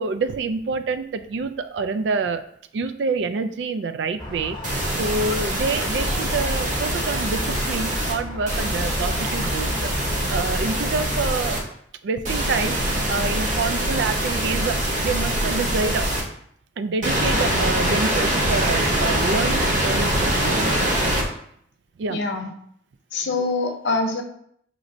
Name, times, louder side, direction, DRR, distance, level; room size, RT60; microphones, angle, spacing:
voice 1, 0.0-2.5 2.7-11.6 12.0-16.1 16.8-20.8 22.0-22.2, right 4 dB, 70° right, 9 dB, 0.3 m, -27 dB
Squeak, 4.2-11.3, left 1 dB, 25° left, 0.8 m, -34 dB
sound 1, 4.6-8.1 8.5-11.6 12.2-16.2 17.0-21.2, right 1 dB, 40° right, 0.8 m, -23 dB
voice 2, 22.1-22.5 23.1-24.2, left 3 dB, 70° left, 4 dB, 0.6 m, -24 dB
6.0 x 3.1 x 2.6 m, 0.68 s
head